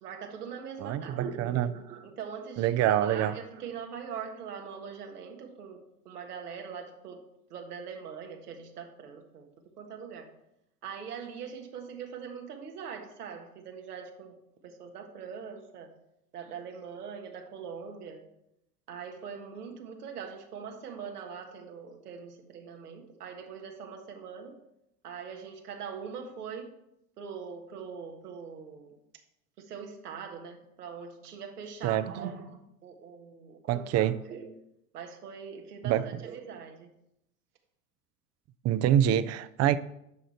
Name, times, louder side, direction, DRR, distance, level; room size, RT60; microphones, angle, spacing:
voice 1, 0.0-5.8 6.0-7.2 7.5-9.5 9.8-10.3 10.8-14.3 14.6-15.9 16.3-18.2 18.9-24.6 25.0-26.7 27.2-28.9 29.6-34.5 34.9-36.9, right 6 dB, 80° right, 1.6 m, -42 dB
voice 2, 0.8-1.7 2.6-3.3 31.8-32.1 33.7-34.2 35.8-36.1 38.6-39.8, right 11 dB, 35° right, 0.6 m, -25 dB
10.5 x 6.3 x 4.3 m
hypercardioid pair, 80°, 45 cm